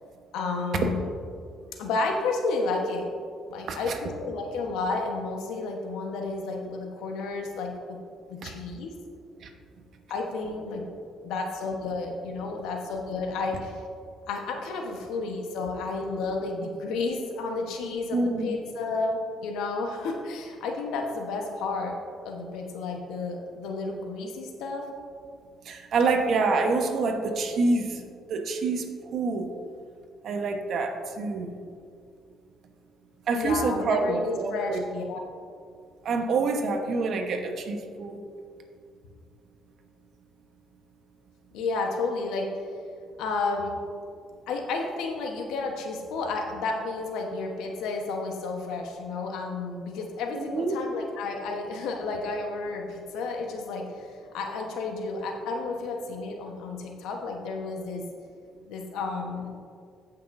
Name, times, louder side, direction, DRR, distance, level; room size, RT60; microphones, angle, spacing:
voice 1, 0.3-1.1 1.8-3.1 3.5-8.0 8.3-8.9 10.1-10.8 11.2-13.8 14.3-21.9 22.2-24.8 33.3-35.2 41.5-42.5 43.2-43.8 44.5-58.0 58.7-59.6, left 3 dB, 85° left, 2 dB, 1.1 m, -31 dB
voice 2, 18.1-18.5 25.6-28.0 28.3-29.5 30.2-31.5 33.3-34.8 36.0-38.2 50.3-50.8, right 3 dB, 65° right, 4 dB, 1.1 m, -27 dB
16.0 x 5.8 x 2.7 m, 2.2 s
cardioid pair, 90°, 0 cm